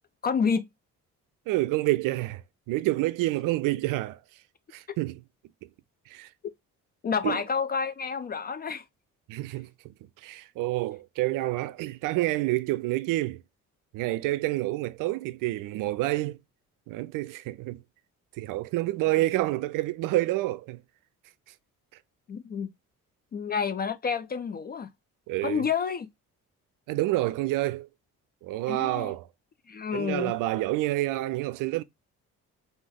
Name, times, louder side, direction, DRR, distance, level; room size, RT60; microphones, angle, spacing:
voice 1, 0.2-0.7 7.0-8.8 22.3-22.7 23.3-24.9 25.4-26.1 28.7-29.1 29.7-30.3, left 6 dB, 25° left, 0.4 m, -29 dB
voice 2, 1.5-2.4 2.7-4.2 4.7-5.2 6.1-6.3 7.2-7.4 9.3-9.9 10.2-13.4 13.9-16.4 16.9-17.8 18.4-20.8 25.3-25.6 26.9-27.9 28.4-29.3 29.9-31.8, right 17 dB, 50° right, 0.5 m, -28 dB
5.1 x 2.4 x 3.4 m
figure-of-eight pair, 45°, 44 cm